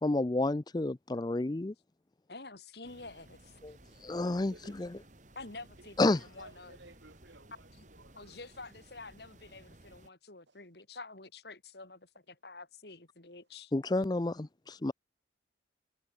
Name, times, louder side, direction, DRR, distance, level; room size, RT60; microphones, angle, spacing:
voice 1, 0.0-1.7 3.6-3.7 4.0-4.9 6.0-6.2 13.7-14.9, left 2 dB, 20° left, 0.5 m, -30 dB
voice 2, 2.3-3.6 5.3-6.8 7.7-7.9 8.1-13.7, left 3 dB, 60° left, 3.0 m, -49 dB
sound 1, 2.8-10.1, right 1 dB, 40° right, 3.0 m, -58 dB
voice 3, 3.7-4.2 4.5-4.9 5.8-8.4 10.5-10.6, right 2 dB, 75° right, 5.5 m, -57 dB
head